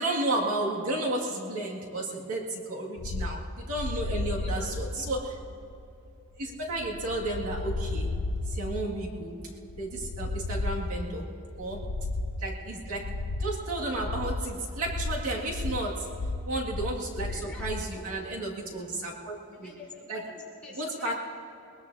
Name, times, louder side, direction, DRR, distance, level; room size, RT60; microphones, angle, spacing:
voice 1, 0.0-5.3 6.4-8.2 8.5-11.9 12.4-19.7 20.1-20.4 20.8-21.1, right 2 dB, 75° right, -3 dB, 2.2 m, -33 dB
sound 1, 3.0-17.9, left 2 dB, 85° left, 0.7 m, -34 dB
voice 2, 4.1-5.1 17.3-17.7 17.9-18.0 18.3-18.4 19.5-21.1, left 2 dB, 5° left, -5 dB, 3.5 m, -46 dB
22.0 x 21.5 x 2.8 m, 2.8 s
head